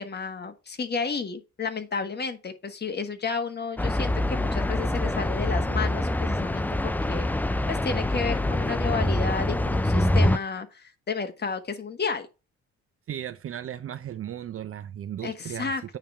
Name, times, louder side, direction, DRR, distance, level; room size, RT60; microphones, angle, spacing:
voice 1, 0.0-7.3 7.7-12.3 15.2-16.0, left 5 dB, 35° left, 1.5 m, -32 dB
sound 1, 3.8-10.4, left 1 dB, 5° left, 0.3 m, -25 dB
voice 2, 13.1-16.0, right 10 dB, 45° right, 0.5 m, -36 dB
9.0 x 3.5 x 5.6 m
cardioid pair, 90°, 30 cm